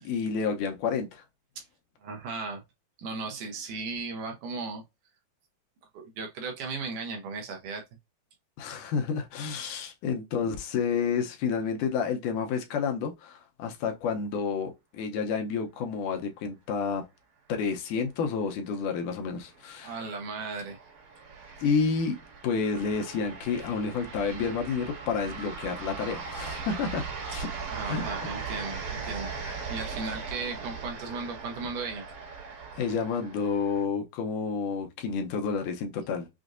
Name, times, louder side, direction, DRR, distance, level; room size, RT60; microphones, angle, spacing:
voice 1, 0.1-1.2 8.6-17.0 17.5-19.9 21.6-27.5 27.8-28.0 29.4-29.5 32.8-36.3, left 5 dB, 75° left, 2.1 m, -30 dB
voice 2, 2.0-2.6 3.0-4.8 5.9-7.8 19.8-20.8 27.7-32.0, right 4 dB, 70° right, 2.2 m, -36 dB
sound 1, 19.0-33.8, right 5 dB, 55° right, 2.5 m, -39 dB
6.2 x 2.5 x 2.5 m
omnidirectional pair, 4.1 m